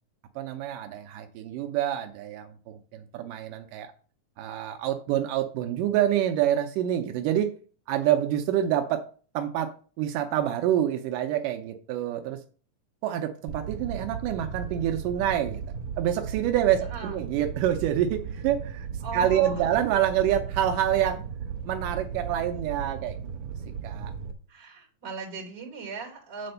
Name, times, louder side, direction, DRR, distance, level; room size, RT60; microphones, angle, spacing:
voice 1, 0.4-3.9 4.4-7.5 7.9-9.1 9.3-12.4 13.0-15.6 16.0-18.9 19.1-21.2 21.6-23.2 23.8-24.1, right 11 dB, 85° right, 5 dB, 2.4 m, -27 dB
Fire, 13.5-24.3, right 7 dB, 70° right, 2.1 m, -36 dB
voice 2, 16.9-17.2 19.0-19.7 24.5-26.5, right 4 dB, 35° right, -3 dB, 3.4 m, -38 dB
8.8 x 4.3 x 6.7 m, 0.39 s
omnidirectional pair, 3.6 m